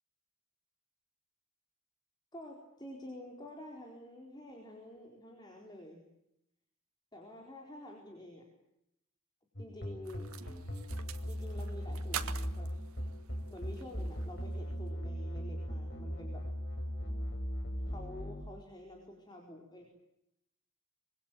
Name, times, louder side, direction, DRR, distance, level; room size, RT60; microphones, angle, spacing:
voice 1, 2.3-6.0 7.1-8.5 9.6-10.3 10.6-10.7 11.3-12.7 13.5-16.4 17.8-19.9, left 1 dB, 20° left, 1 dB, 4.4 m, -49 dB
sound 1, 9.6-18.4, equal, 55° left, 7.8 m, -38 dB
sound 2, 10.0-14.8, right 8 dB, 90° right, 1.7 m, -46 dB
25.5 x 23.0 x 9.3 m, 0.84 s
head